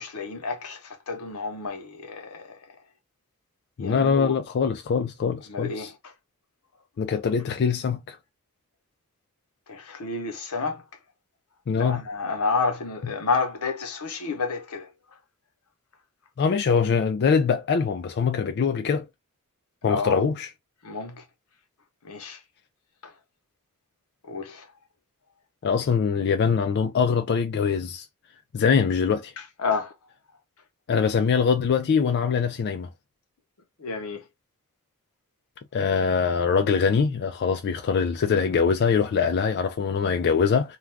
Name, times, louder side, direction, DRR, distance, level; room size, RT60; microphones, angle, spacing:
voice 1, 0.0-2.6 3.8-4.4 5.5-5.9 9.7-10.8 11.8-14.9 19.9-20.2 20.8-21.2 22.0-22.4 23.0-23.1 24.3-24.6 29.6-29.9 33.8-34.2, left 4 dB, 85° left, 0.8 m, -30 dB
voice 2, 3.8-5.9 7.0-8.2 11.7-12.0 16.4-19.1 19.8-20.5 25.6-28.1 28.5-29.3 30.9-32.9 35.7-40.8, left 6 dB, 50° left, 0.3 m, -23 dB
2.3 x 2.3 x 3.2 m
head